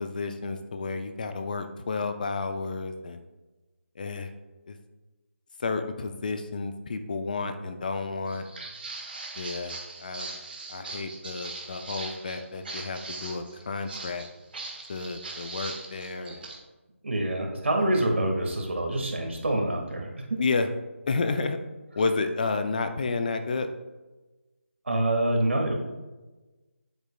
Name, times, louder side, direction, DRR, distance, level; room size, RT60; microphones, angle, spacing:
voice 1, 0.0-3.2 4.0-4.3 4.7-4.8 5.6-8.5 9.4-10.3 10.7-14.3 14.9-16.5 17.8-18.0 20.4-20.7 21.1-21.6 22.0-23.7, left 4 dB, 40° left, 8 dB, 0.5 m, -31 dB
Walk footsteps, 8.3-16.6, right 3 dB, 45° right, 1.4 m, -40 dB
voice 2, 17.0-20.2 24.9-25.7, right 1 dB, 65° right, 2 dB, 1.8 m, -26 dB
9.1 x 8.1 x 2.3 m, 1.2 s
figure-of-eight pair, 160°, 7 cm